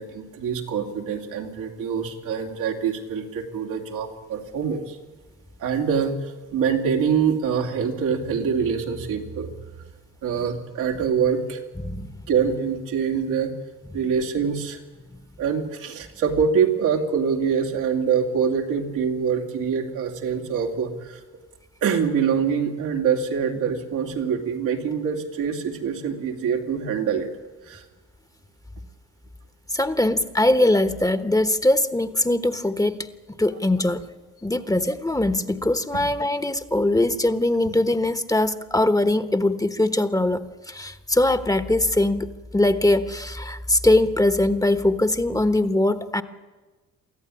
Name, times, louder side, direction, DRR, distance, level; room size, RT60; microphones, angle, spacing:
voice 1, 0.0-5.0 5.6-9.5 9.8-9.9 10.2-11.6 12.3-13.5 13.9-14.8 15.4-21.2 21.8-27.3 27.6-27.9, right 6 dB, 90° right, 1 dB, 2.9 m, -25 dB
voice 2, 11.8-12.2 15.1-15.2 29.7-33.1 33.4-34.1 34.4-46.2, left 1 dB, 10° left, 11 dB, 1.2 m, -21 dB
24.0 x 14.0 x 9.9 m, 1.2 s
cardioid pair, 90°, 30 cm